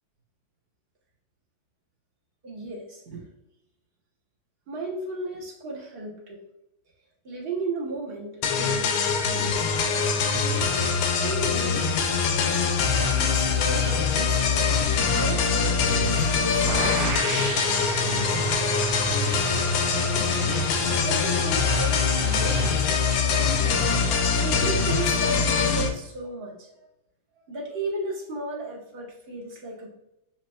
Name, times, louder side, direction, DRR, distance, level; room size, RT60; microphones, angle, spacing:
voice 1, 2.4-3.3 4.7-6.4 7.2-9.6 10.2-10.7 11.2-11.9 12.9-17.3 20.0-22.9 23.3-24.0 24.4-26.7 27.4-29.9, right 2 dB, 40° right, -3 dB, 0.9 m, -35 dB
sound 1, 8.4-25.9, left 5 dB, 90° left, 1.4 m, -23 dB
sound 2, 16.7-22.7, right 5 dB, 60° right, 1.1 m, -33 dB
7.3 x 2.8 x 2.2 m, 0.86 s
omnidirectional pair, 2.1 m